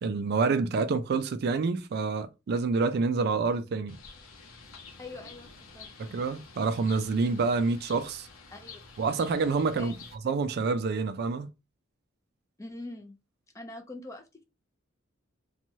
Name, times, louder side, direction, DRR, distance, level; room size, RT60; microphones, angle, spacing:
voice 1, 0.0-4.0 6.0-8.3 9.0-9.9 10.2-11.5, right 4 dB, 50° right, 0.3 m, -27 dB
Bird, 3.9-10.1, left 4 dB, 80° left, 0.7 m, -49 dB
voice 2, 5.0-5.5 5.7-6.2 8.5-8.8 9.8-9.9 12.6-13.2 13.5-14.4, left 2 dB, 15° left, 0.5 m, -43 dB
3.0 x 2.3 x 2.7 m
head